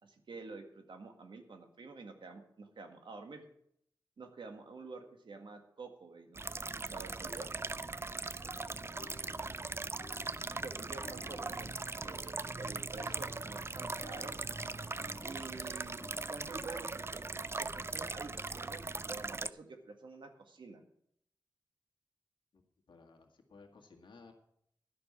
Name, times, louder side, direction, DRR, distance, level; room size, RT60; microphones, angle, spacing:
voice 1, 0.0-3.4 4.2-7.5 10.6-11.7 12.0-14.4 15.2-17.3 17.6-20.8, right 3 dB, 80° right, 5 dB, 1.8 m, -49 dB
sound 1, 6.3-19.5, right 3 dB, 30° right, 0.4 m, -40 dB
voice 2, 8.4-9.2 22.5-22.6 22.9-24.3, left 4 dB, 85° left, 2 dB, 1.9 m, -58 dB
sound 2, 9.0-16.8, left 2 dB, 45° left, 2.0 m, -56 dB
12.0 x 6.3 x 8.6 m, 0.71 s
wide cardioid pair, 75°, 8 cm